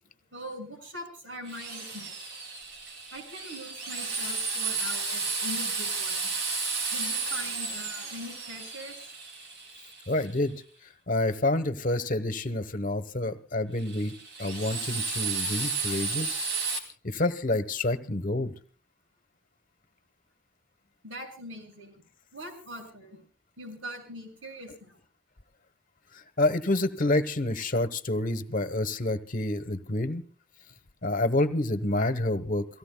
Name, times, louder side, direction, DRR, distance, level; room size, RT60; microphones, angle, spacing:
voice 1, 0.3-2.1 3.1-6.3 6.9-9.1 21.0-22.0 22.3-23.2 23.6-25.0, equal, 80° right, 3 dB, 6.4 m, -42 dB
Drill, 1.5-10.4 13.8-16.8, right 4 dB, 60° right, 2.8 m, -33 dB
voice 2, 10.1-10.5 11.1-14.1 14.4-16.7 17.0-18.5 26.4-30.2 31.0-32.7, left 2 dB, 45° left, 12 dB, 1.1 m, -28 dB
29.5 x 17.5 x 2.3 m, 0.39 s
head